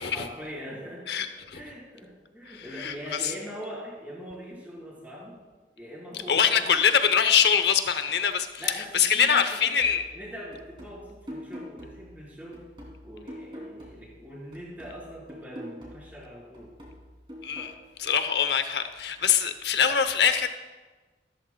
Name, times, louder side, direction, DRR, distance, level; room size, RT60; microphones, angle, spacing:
voice 1, 0.0-5.4 5.8-7.1 8.6-12.7 13.0-16.7, equal, 10° right, -6 dB, 4.0 m, -42 dB
voice 2, 1.1-1.6 2.5-2.9 3.2-3.3 6.3-8.5 8.9-10.0 17.4-17.7 18.0-20.5, left 7 dB, 70° left, 9 dB, 0.8 m, -23 dB
sound 1, 9.8-14.2 14.5-17.8, equal, 30° right, 2.9 m, -45 dB
14.5 x 13.5 x 2.3 m, 1.3 s
head